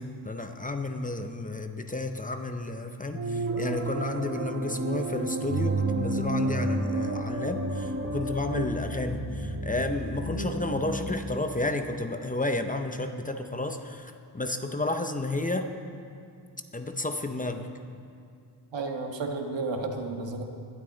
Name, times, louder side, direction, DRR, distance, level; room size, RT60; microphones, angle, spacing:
voice 1, 0.0-15.7 16.7-17.7, left 2 dB, 20° left, 6 dB, 0.6 m, -32 dB
sound 1, 3.1-11.1, right 2 dB, 70° right, 1.9 m, -33 dB
sound 2, 3.5-8.7, right 2 dB, 30° right, 1.3 m, -33 dB
voice 2, 18.7-20.4, right 3 dB, 85° right, 4 dB, 1.5 m, -32 dB
20.0 x 12.0 x 3.9 m, 2.4 s
wide cardioid pair, 160°, 43 cm